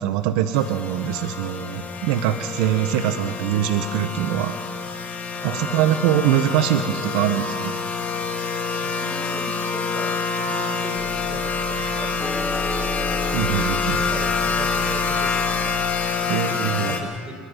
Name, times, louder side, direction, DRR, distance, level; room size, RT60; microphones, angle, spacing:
voice 1, 0.0-4.5 5.4-7.7 13.3-14.1 16.3-17.0, right 11 dB, 85° right, 9 dB, 0.9 m, -23 dB
sound 1, 0.5-17.0, left 4 dB, 40° left, 3.3 m, -27 dB
voice 2, 5.3-6.1 8.7-13.2 13.9-17.4, right 2 dB, 25° right, 3 dB, 5.2 m, -39 dB
sound 2, 11.0-16.1, left 1 dB, 15° left, 2.2 m, -33 dB
27.5 x 11.5 x 9.7 m, 2.1 s
supercardioid pair, 85°, 4 cm